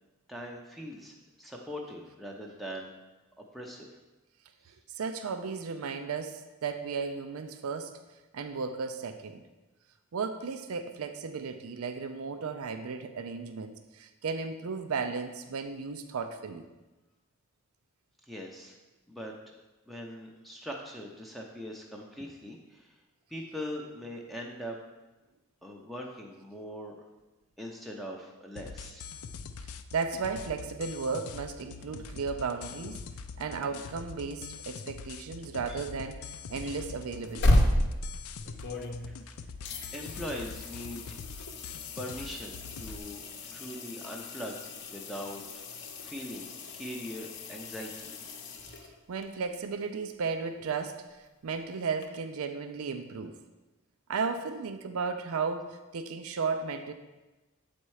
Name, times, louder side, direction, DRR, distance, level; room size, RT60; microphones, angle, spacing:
voice 1, 0.3-2.9 3.5-4.0 18.3-18.8 19.1-19.6 19.9-22.9 23.3-24.8 25.6-26.9 27.6-29.1 35.7-35.8 36.6-36.7 39.1-39.2 39.9-41.5 42.0-43.2 43.5-44.6 44.9-45.4 45.7-48.1, equal, ahead, -1 dB, 0.5 m, -41 dB
voice 2, 4.7-8.0 8.3-9.4 10.1-16.7 29.6-33.0 33.4-37.7 48.8-53.4 54.1-56.9, right 5 dB, 75° right, 8 dB, 0.5 m, -35 dB
sound 1, 28.6-43.0, left 5 dB, 70° left, 0.4 m, -44 dB
sound 2, 37.1-39.3 39.6-49.2 52.0-52.1, left 1 dB, 50° left, 0.8 m, -33 dB
7.9 x 4.3 x 4.7 m, 1.1 s
head